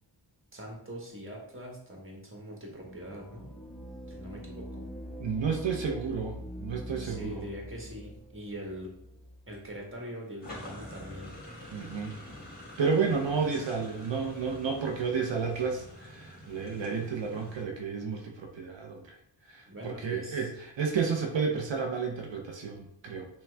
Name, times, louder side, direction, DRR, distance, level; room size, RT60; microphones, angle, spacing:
voice 1, 0.5-3.5 4.1-4.8 7.0-8.9 9.5-11.3 19.7-20.5, equal, 30° right, -1 dB, 1.3 m, -42 dB
sound 1, 2.8-10.0, equal, ahead, 0.5 m, -44 dB
voice 2, 5.2-7.4 11.7-12.2 12.8-19.2 19.5-23.3, right 5 dB, 85° right, 1 dB, 0.7 m, -31 dB
sound 2, 10.4-17.6, left 1 dB, 20° left, 1.6 m, -46 dB
5.9 x 2.3 x 3.3 m, 0.74 s
wide cardioid pair, 65°, 43 cm